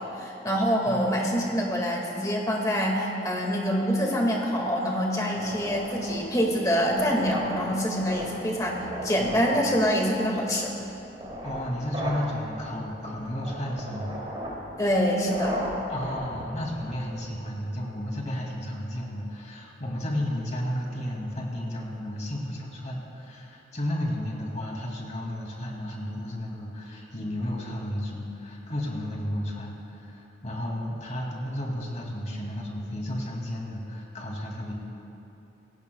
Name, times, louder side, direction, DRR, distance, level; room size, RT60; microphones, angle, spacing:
voice 1, 0.0-10.7 14.8-15.6, equal, 20° left, -1 dB, 2.0 m, -25 dB
sound 1, 5.3-17.3, equal, 30° right, 3.0 m, -37 dB
voice 2, 11.4-14.1 15.9-34.7, left 1 dB, 40° left, -2 dB, 2.5 m, -33 dB
27.0 x 16.5 x 2.3 m, 2.9 s
head